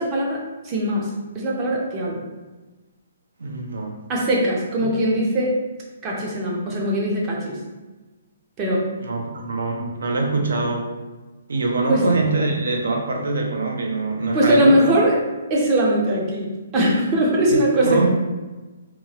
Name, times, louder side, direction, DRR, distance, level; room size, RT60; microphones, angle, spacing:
voice 1, 0.0-2.2 4.1-5.6 6.0-7.6 8.6-8.9 11.9-12.2 14.3-15.2 15.5-18.1, right 1 dB, 20° right, -2 dB, 0.5 m, -21 dB
voice 2, 3.4-4.0 9.0-10.9 11.5-14.9 17.5-18.1, right 3 dB, 85° right, 2 dB, 0.6 m, -24 dB
2.9 x 2.3 x 2.7 m, 1.2 s
hypercardioid pair, 170°, 0 cm